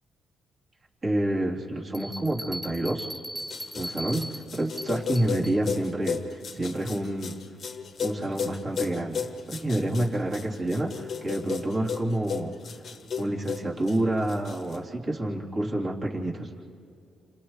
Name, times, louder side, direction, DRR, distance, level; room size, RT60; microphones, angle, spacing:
voice 1, 1.0-3.1 3.7-7.4 8.0-12.6 13.2-16.5, right 1 dB, 35° right, -4 dB, 3.5 m, -28 dB
Bell, 1.9-5.6, equal, 10° right, 2.5 m, -39 dB
sound 1, 3.4-14.8, left 6 dB, 55° left, 1.0 m, -35 dB
30.0 x 27.5 x 3.3 m, 2.6 s
cardioid pair, 90°, 0 cm